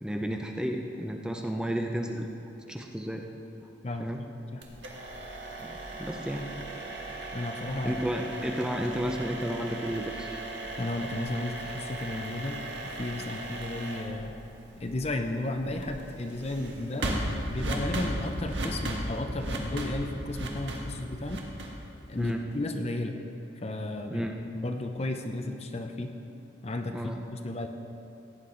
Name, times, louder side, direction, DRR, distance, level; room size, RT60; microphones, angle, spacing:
voice 1, 0.0-2.3 2.7-3.2 4.0-4.2 5.6-6.5 7.8-10.4 17.0-17.2 22.2-22.4 24.1-24.3 26.9-27.2, equal, 5° right, 2 dB, 0.6 m, -32 dB
voice 2, 3.8-4.7 7.3-8.0 10.8-12.6 12.9-14.3 14.8-17.2 17.5-21.4 22.1-23.2 23.6-24.3 24.5-26.1 26.6-27.0 27.3-27.7, left 2 dB, 35° left, 5 dB, 0.6 m, -34 dB
sound 1, 4.6-22.5, right 1 dB, 75° right, 1.5 m, -37 dB
16.5 x 9.7 x 3.9 m, 2.8 s
head